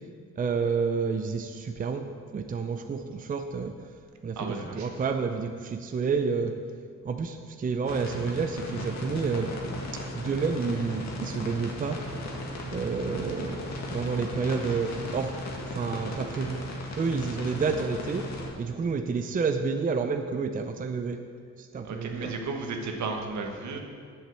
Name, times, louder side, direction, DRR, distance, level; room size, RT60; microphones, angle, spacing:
voice 1, 0.4-3.7 4.2-6.5 7.0-9.6 10.1-12.0 12.7-13.6 13.9-15.3 15.7-16.6 17.0-18.2 18.6-21.2 21.6-22.3, right 5 dB, 30° right, 6 dB, 0.5 m, -29 dB
voice 2, 4.4-4.9 21.8-23.8, right 3 dB, 70° right, 3 dB, 1.5 m, -34 dB
sound 1, 7.8-18.5, left 1 dB, 65° left, 1.9 m, -36 dB
8.1 x 7.2 x 7.5 m, 2.2 s
cardioid pair, 120°, 30 cm